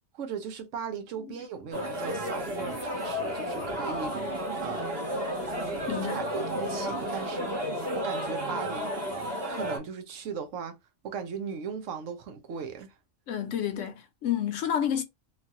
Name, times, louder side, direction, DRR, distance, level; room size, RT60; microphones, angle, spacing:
voice 1, 0.1-4.3 4.6-4.9 5.6-7.5 7.9-8.9 9.3-10.8 11.0-12.9, right 6 dB, 75° right, 1.0 m, -38 dB
sound 1, 1.7-9.8, equal, 55° right, 1.4 m, -32 dB
voice 2, 5.9-6.2 13.3-15.0, left 9 dB, 75° left, 0.9 m, -30 dB
3.0 x 2.4 x 2.6 m
omnidirectional pair, 1.3 m